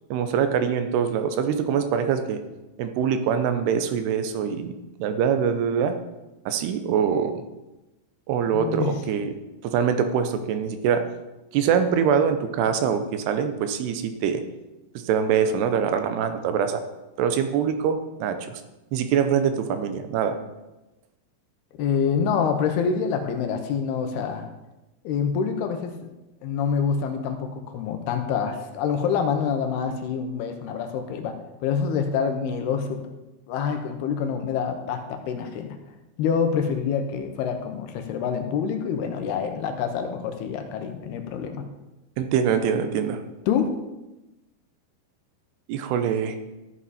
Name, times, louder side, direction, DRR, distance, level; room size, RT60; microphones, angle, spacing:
voice 1, 0.1-2.4 2.8-5.9 6.5-7.4 8.3-9.3 9.6-11.0 11.5-14.4 15.0-16.8 17.2-18.6 18.9-20.4 42.2-43.2 45.7-46.4, right 7 dB, 80° right, 8 dB, 2.9 m, -24 dB
voice 2, 8.5-8.9 21.7-24.4 25.0-26.1 26.4-33.0 33.5-35.8 36.2-41.7 43.5-43.7, left 6 dB, 80° left, 6 dB, 2.9 m, -26 dB
14.0 x 7.3 x 4.2 m, 1.0 s
omnidirectional pair, 4.7 m